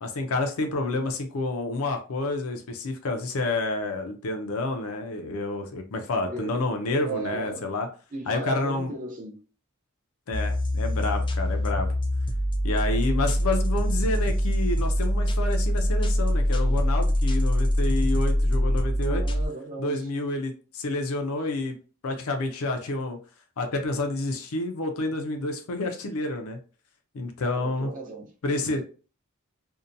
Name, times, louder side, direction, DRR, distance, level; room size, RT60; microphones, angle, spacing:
voice 1, 0.0-7.9 8.3-8.9 10.3-11.9 12.6-19.2 19.8-21.8 22.0-23.2 23.6-26.6 27.1-27.9 28.4-28.8, left 2 dB, 80° left, 0.5 m, -29 dB
voice 2, 6.2-6.6 7.0-7.8 8.1-9.3 19.0-20.0 27.4-28.3 28.7-28.8, right 2 dB, 40° right, 0.6 m, -36 dB
sound 1, 10.3-19.5, equal, 25° left, 0.3 m, -24 dB
2.7 x 2.2 x 2.5 m
head